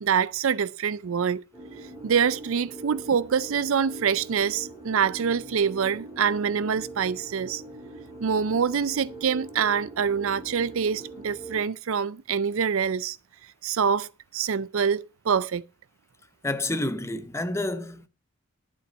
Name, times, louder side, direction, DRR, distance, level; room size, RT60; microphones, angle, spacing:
voice 1, 0.0-1.4 2.0-7.6 8.2-13.2 13.6-15.6, right 7 dB, 60° right, 0.4 m, -25 dB
sound 1, 1.5-11.6, right 2 dB, 15° right, 4.0 m, -42 dB
voice 2, 16.4-18.1, left 2 dB, 10° left, 0.7 m, -29 dB
11.5 x 7.1 x 5.4 m
head